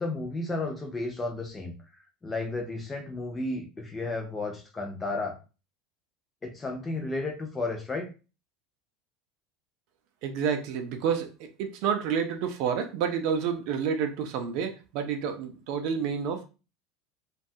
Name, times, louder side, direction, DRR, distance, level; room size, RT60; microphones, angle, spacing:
voice 1, 0.0-1.7 2.2-5.4 6.4-8.1, left 2 dB, 10° left, 3 dB, 0.4 m, -33 dB
voice 2, 10.2-16.5, right 7 dB, 50° right, 6 dB, 0.4 m, -29 dB
2.7 x 2.2 x 2.6 m, 0.32 s
cardioid pair, 175°, 0 cm